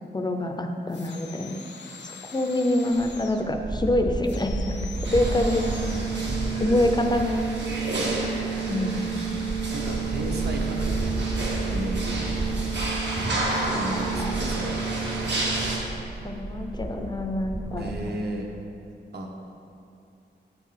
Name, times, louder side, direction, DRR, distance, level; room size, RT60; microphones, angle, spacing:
voice 1, 0.1-1.6 2.0-4.9 5.1-5.7 6.6-7.4 8.7-9.2 13.7-13.8 16.2-18.0, left 1 dB, 25° left, 4 dB, 0.4 m, -26 dB
sound 1, 0.9-3.5 4.2-6.2, left 5 dB, 75° left, 0.6 m, -44 dB
sound 2, 2.9-18.0, right 2 dB, 25° right, 0.6 m, -33 dB
sound 3, 5.0-15.8, right 4 dB, 80° right, 1.4 m, -29 dB
voice 2, 5.1-6.6 9.7-11.3 11.7-12.3 13.7-14.8 17.8-18.5 19.1-19.3, right 1 dB, 65° right, 0 dB, 0.9 m, -34 dB
7.7 x 4.6 x 5.6 m, 2.6 s
wide cardioid pair, 180°, 18 cm